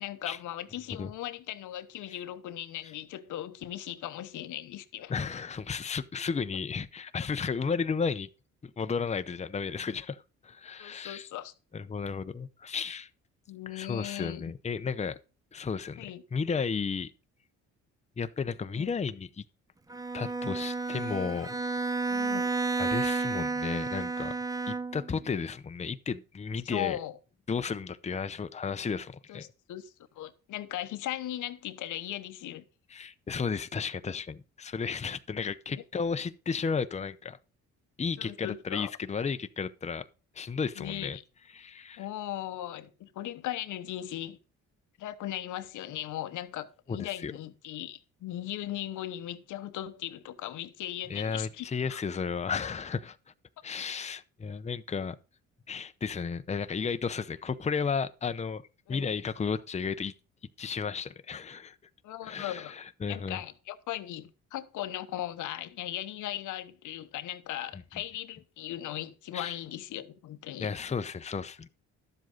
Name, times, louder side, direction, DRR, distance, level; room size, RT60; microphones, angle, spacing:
voice 1, 0.0-5.1 10.8-11.5 13.5-14.4 16.0-16.2 18.7-18.9 22.1-22.5 26.7-27.2 29.3-32.7 35.7-35.8 38.2-38.9 40.8-41.2 42.0-44.4 45.0-52.0 58.9-59.2 62.0-62.7 63.1-70.7, left 13 dB, 85° left, 1.0 m, -38 dB
voice 2, 5.1-8.3 8.6-11.3 11.7-13.1 13.7-15.2 15.5-17.1 18.2-19.4 20.1-21.6 22.8-24.4 24.7-27.0 27.5-29.5 32.9-37.4 38.0-40.1 40.3-41.2 41.5-42.0 46.9-47.3 51.1-53.2 53.6-55.2 55.7-58.6 58.9-60.1 60.6-61.7 62.2-63.4 69.3-69.6 70.6-71.7, left 5 dB, 20° left, 0.7 m, -33 dB
Bowed string instrument, 19.9-25.2, right 3 dB, 10° right, 0.7 m, -31 dB
12.0 x 7.6 x 3.9 m
cardioid pair, 90°, 30 cm